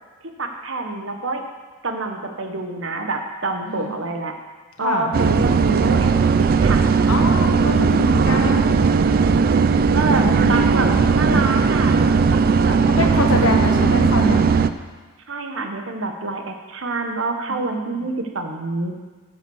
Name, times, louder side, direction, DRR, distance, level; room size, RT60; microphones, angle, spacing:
voice 1, 0.2-1.4 1.8-4.3 4.8-6.9 9.3-14.0 15.3-18.9, right 3 dB, 65° right, 4 dB, 1.1 m, -27 dB
voice 2, 3.7-4.0 4.8-5.1 7.1-8.9 10.2-11.5 12.9-14.5 17.5-17.9, left 2 dB, 90° left, 2 dB, 1.4 m, -25 dB
sound 1, 5.1-14.7, right 5 dB, 45° right, 0.3 m, -17 dB
9.3 x 5.5 x 7.1 m, 1.4 s
head